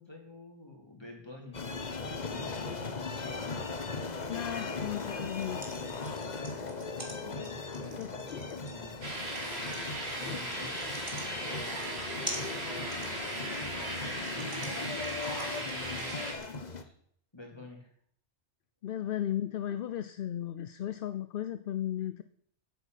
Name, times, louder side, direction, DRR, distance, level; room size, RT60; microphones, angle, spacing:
voice 1, 0.0-3.6 5.4-5.7 7.0-9.0 10.1-10.9 11.4-16.2 16.7-16.9 17.3-17.9, left 2 dB, 20° left, 1 dB, 3.4 m, -49 dB
sound 1, 1.5-16.8, left 4 dB, 40° left, 1.2 m, -39 dB
voice 2, 4.3-5.6 7.3-7.5 7.9-8.6 10.2-10.4 18.8-22.2, left 11 dB, 55° left, 12 dB, 0.7 m, -36 dB
sound 2, 5.3-16.6, right 2 dB, 45° right, 2.6 m, -45 dB
sound 3, 9.0-16.3, right 1 dB, 65° right, 2.9 m, -37 dB
10.0 x 8.2 x 9.2 m, 0.67 s
omnidirectional pair, 1.2 m